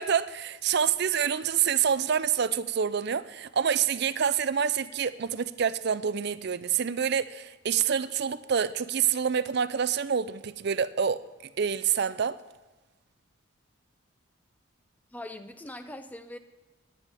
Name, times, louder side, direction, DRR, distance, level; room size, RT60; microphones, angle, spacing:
voice 1, 0.0-11.2 11.6-12.4, right 7 dB, 55° right, 15 dB, 0.5 m, -27 dB
voice 2, 15.1-16.4, left 1 dB, 10° left, 9 dB, 0.6 m, -41 dB
16.5 x 10.5 x 3.5 m, 1.1 s
head